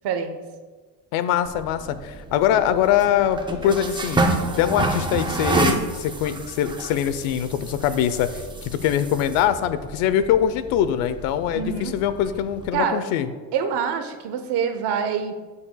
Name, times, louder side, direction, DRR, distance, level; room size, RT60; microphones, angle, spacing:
voice 1, 0.0-0.4 5.6-5.8 11.5-11.9 12.7-13.0 13.5-15.3, right 7 dB, 55° right, 7 dB, 1.0 m, -26 dB
voice 2, 1.1-4.2 4.6-5.8 6.2-13.3, left 10 dB, 90° left, 12 dB, 0.8 m, -23 dB
sound 1, 1.4-12.7, right 2 dB, 10° right, 0.5 m, -29 dB
12.0 x 8.5 x 2.3 m, 1.4 s
cardioid pair, 145°, 48 cm